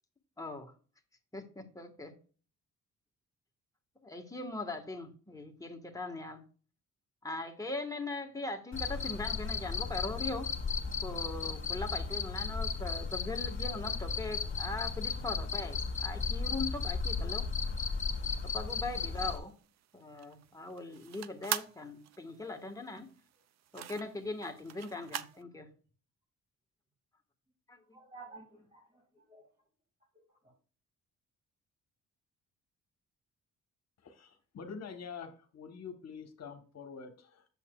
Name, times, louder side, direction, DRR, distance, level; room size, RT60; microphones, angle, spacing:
voice 1, 0.4-0.7 1.3-2.1 4.0-6.4 7.2-10.5 11.0-17.5 18.5-19.5 19.9-23.1 23.7-25.7 27.7-28.0, left 2 dB, 10° left, 1.3 m, -40 dB
Cricket, 8.7-19.4, left 5 dB, 40° left, 2.1 m, -35 dB
sound 1, 19.1-25.4, right 11 dB, 60° right, 0.5 m, -42 dB
voice 2, 27.9-29.4 30.1-30.5, right 3 dB, 25° right, 2.1 m, -54 dB
voice 3, 34.0-37.6, left 6 dB, 60° left, 1.1 m, -46 dB
8.4 x 7.1 x 2.3 m
cardioid pair, 95°, 30 cm